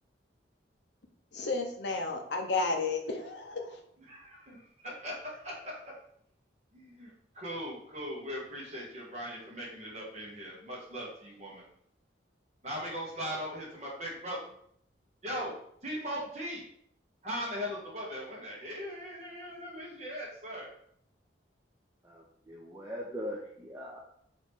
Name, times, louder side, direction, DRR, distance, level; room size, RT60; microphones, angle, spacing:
voice 1, 1.3-3.8, left 3 dB, 65° left, 3 dB, 0.6 m, -32 dB
voice 2, 4.1-5.9 6.7-11.7 12.6-14.5 15.2-15.6 15.8-16.6 17.2-20.7, equal, 35° right, -4 dB, 1.2 m, -39 dB
voice 3, 22.0-24.0, equal, 15° right, -4 dB, 0.5 m, -41 dB
4.1 x 3.0 x 3.5 m, 0.68 s
head